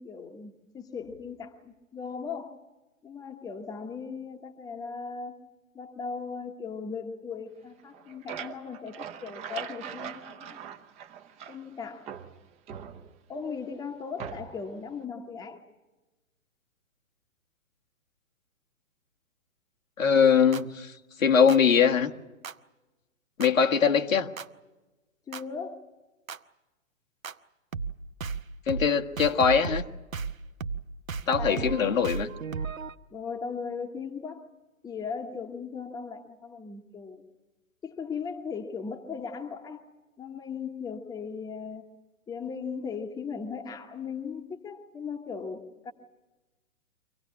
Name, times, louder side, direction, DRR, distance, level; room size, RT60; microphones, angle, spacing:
voice 1, 0.0-2.6 3.0-5.4 5.7-10.6 11.5-12.1 13.3-15.6 25.3-25.8 31.4-31.9 33.1-34.5 34.8-37.2 37.8-39.8 40.2-41.9 42.3-45.9, left 5 dB, 10° left, 5 dB, 1.1 m, -38 dB
sound 1, 7.8-11.7 12.1-13.4 14.2-14.7, right 8 dB, 15° right, 0.9 m, -41 dB
voice 2, 20.0-20.9 21.2-22.1 23.4-24.3 28.7-29.9 31.3-32.3, left 7 dB, 75° left, 2 dB, 1.8 m, -22 dB
sound 2, 20.5-20.6 21.5-21.6 22.4-22.5 23.4-23.5 24.4-24.5 25.3-25.4 26.3-26.4 27.2-27.3 27.7-27.9 28.2-28.4 28.7-28.9 29.2-29.9 30.1-30.3 30.6-30.8 31.1-32.9, right 5 dB, 80° right, 1.0 m, -34 dB
25.5 x 16.5 x 9.6 m, 1.1 s
figure-of-eight pair, 125°, 40 cm